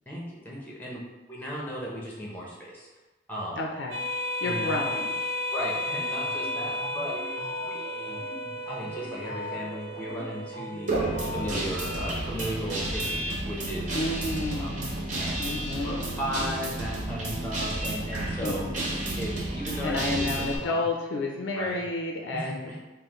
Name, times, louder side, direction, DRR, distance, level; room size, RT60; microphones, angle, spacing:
voice 1, 0.1-1.0 1.3-2.9 3.3-3.6 4.4-4.8 5.5-7.2 7.7-8.2 8.7-14.0 14.5-14.7 15.1-15.5 15.8-18.6 19.2-20.0 20.5-20.8 21.5-21.8 22.3-22.8, equal, 10° left, -4 dB, 0.7 m, -36 dB
voice 2, 3.6-4.0 4.4-5.1 13.9-16.2 18.4-19.0 19.8-22.8, left 2 dB, 75° left, 0 dB, 0.4 m, -31 dB
sound 1, 3.9-12.9, left 1 dB, 80° right, 0.6 m, -34 dB
sound 2, 6.1-12.1, left 3 dB, 15° right, 1.3 m, -41 dB
Guitar, 10.9-20.6, right 1 dB, 40° right, 0.7 m, -31 dB
5.5 x 2.1 x 3.0 m, 1.1 s
head